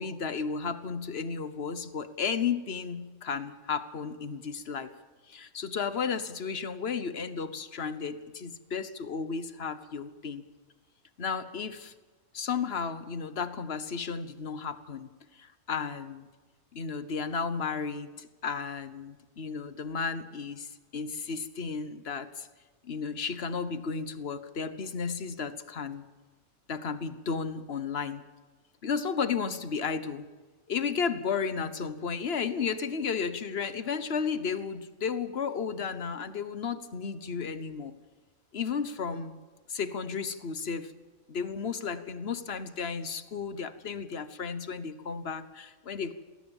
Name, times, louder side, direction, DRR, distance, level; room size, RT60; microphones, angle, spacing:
voice 1, 0.0-4.9 5.3-10.4 11.2-11.9 12.3-15.1 15.3-16.3 16.7-22.5 22.8-26.0 26.7-28.2 28.8-30.3 30.7-37.9 38.5-39.4 39.7-40.9 41.3-46.1, left 6 dB, 50° left, 12 dB, 1.3 m, -33 dB
21.0 x 17.5 x 7.3 m, 1.3 s
omnidirectional pair, 1.5 m